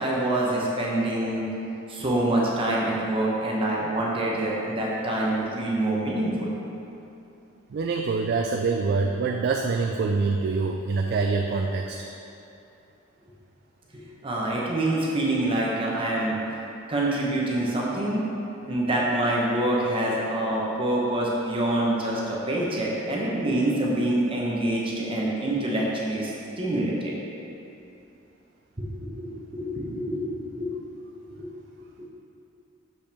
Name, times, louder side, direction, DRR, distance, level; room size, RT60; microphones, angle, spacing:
voice 1, 0.0-1.5 1.9-6.5 13.9-16.4 16.9-18.2 18.7-27.2 28.8-30.7 31.3-31.5, right 1 dB, 25° right, -4 dB, 0.8 m, -26 dB
voice 2, 7.7-12.0, right 4 dB, 50° right, 2 dB, 0.3 m, -25 dB
6.7 x 5.3 x 3.4 m, 2.8 s
head